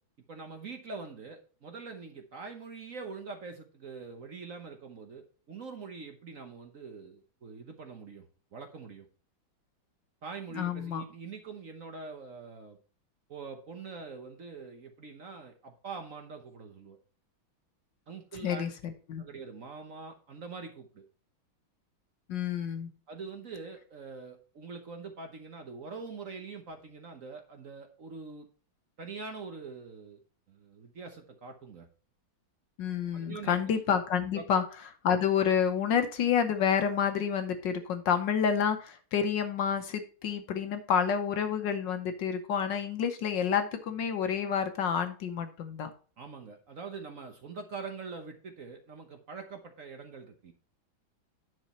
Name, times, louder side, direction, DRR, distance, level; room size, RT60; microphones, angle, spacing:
voice 1, 0.3-8.3 8.5-9.1 10.2-12.8 13.3-17.0 18.1-18.7 19.2-21.0 23.1-28.5 29.0-30.2 30.5-31.9 33.1-33.6 34.3-34.4 46.2-50.5, right 4 dB, 50° right, 5 dB, 1.2 m, -44 dB
voice 2, 10.5-11.0 18.4-19.2 22.3-22.9 32.8-34.6 35.0-45.9, left 7 dB, 65° left, 8 dB, 1.5 m, -29 dB
9.8 x 6.2 x 4.2 m, 0.39 s
omnidirectional pair, 2.2 m